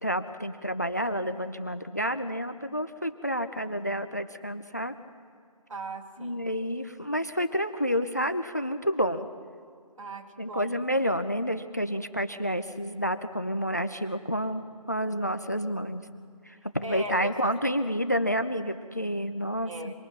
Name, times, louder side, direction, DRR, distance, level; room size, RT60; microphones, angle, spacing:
voice 1, 0.0-4.9 6.2-9.3 10.4-16.0 16.5-19.9, equal, 30° left, 11 dB, 0.5 m, -29 dB
voice 2, 5.7-6.5 10.0-10.8 16.8-17.5 19.7-19.9, right 2 dB, 60° right, 2 dB, 2.5 m, -38 dB
26.0 x 21.0 x 5.9 m, 2.1 s
figure-of-eight pair, 180°, 19 cm